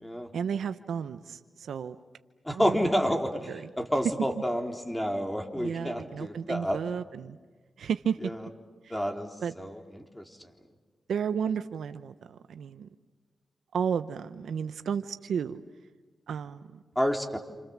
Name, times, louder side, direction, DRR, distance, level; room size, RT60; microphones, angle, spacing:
voice 1, 0.3-2.0 2.5-2.9 3.5-3.7 5.6-7.4 7.8-8.2 8.8-9.0 9.4-9.5 11.1-12.9 13.7-15.6 16.3-16.8, right 7 dB, 85° right, 10 dB, 0.8 m, -33 dB
voice 2, 2.5-6.8 8.2-8.4 8.9-9.3 9.6-10.2 17.0-17.4, equal, 10° left, 3 dB, 4.0 m, -29 dB
29.0 x 28.0 x 7.3 m, 1.4 s
cardioid pair, 55°, 0 cm